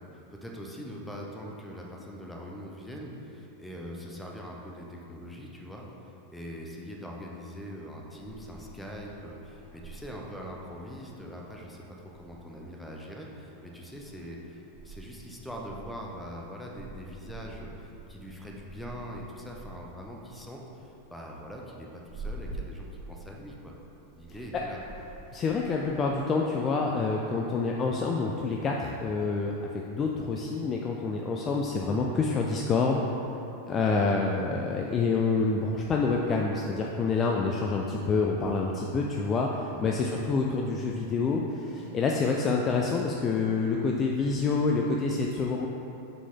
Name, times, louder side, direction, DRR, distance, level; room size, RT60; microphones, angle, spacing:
voice 1, 0.1-23.7 24.1-24.8 39.7-40.0, equal, 5° left, -2 dB, 0.8 m, -42 dB
sound 1, 8.2-26.1, right 2 dB, 15° right, 1.4 m, -47 dB
voice 2, 25.3-33.0 33.7-45.7, left 4 dB, 25° left, -1 dB, 0.4 m, -27 dB
7.1 x 4.1 x 3.7 m, 2.9 s
figure-of-eight pair, 90°, 0 cm